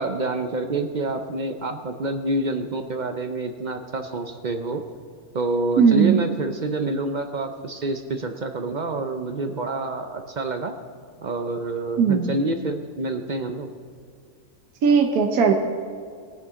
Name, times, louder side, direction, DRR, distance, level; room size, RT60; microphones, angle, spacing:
voice 1, 0.0-4.8 5.3-10.7 11.2-13.7, right 2 dB, 55° right, 6 dB, 0.5 m, -27 dB
voice 2, 5.8-6.2 12.0-12.3 14.8-15.5, right 6 dB, 75° right, 3 dB, 1.4 m, -18 dB
19.5 x 9.3 x 3.7 m, 2.1 s
omnidirectional pair, 1.6 m